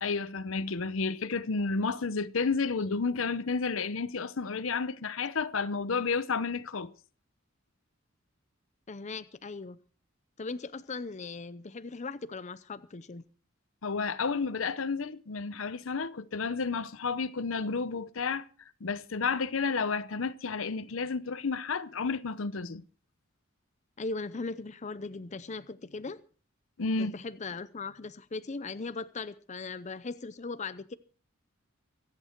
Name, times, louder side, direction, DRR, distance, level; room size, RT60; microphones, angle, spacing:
voice 1, 0.0-6.9 13.8-18.4 18.8-22.8 26.8-27.2, left 4 dB, 75° left, 0.8 m, -31 dB
voice 2, 8.9-9.8 10.4-13.2 24.0-26.2 27.0-30.9, left 3 dB, 35° left, 0.6 m, -39 dB
24.5 x 8.7 x 4.5 m
head